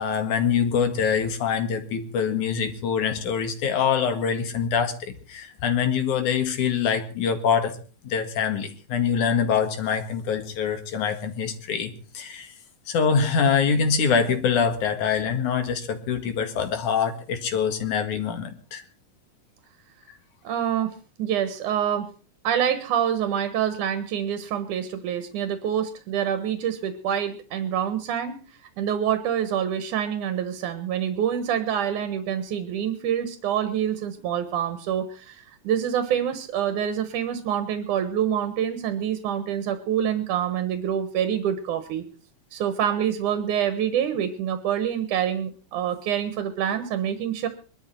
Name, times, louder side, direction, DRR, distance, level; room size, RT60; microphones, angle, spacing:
voice 1, 0.0-7.8 8.0-12.5 12.9-18.8, left 6 dB, 80° left, 7 dB, 3.3 m, -24 dB
voice 2, 20.4-22.1 22.4-42.0 42.5-47.5, right 9 dB, 90° right, 10 dB, 2.8 m, -26 dB
22.5 x 12.0 x 4.5 m, 0.38 s
omnidirectional pair, 3.5 m